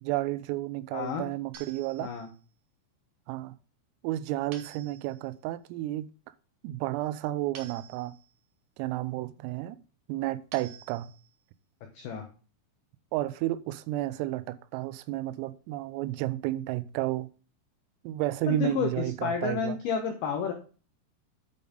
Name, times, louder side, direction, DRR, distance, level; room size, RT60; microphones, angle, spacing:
voice 1, 0.0-2.1 3.3-3.6 4.0-6.1 6.6-8.2 8.8-9.8 10.1-11.1 13.1-17.3 18.0-19.8, right 15 dB, 85° right, 3.3 m, -32 dB
voice 2, 0.9-1.2 2.0-2.3 11.9-12.3 18.5-20.5, left 6 dB, 90° left, 2.2 m, -30 dB
sound 1, 1.5-2.5 4.5-5.4 7.6-8.5 10.5-11.4, right 6 dB, 60° right, 2.9 m, -50 dB
9.4 x 5.4 x 5.0 m
omnidirectional pair, 5.9 m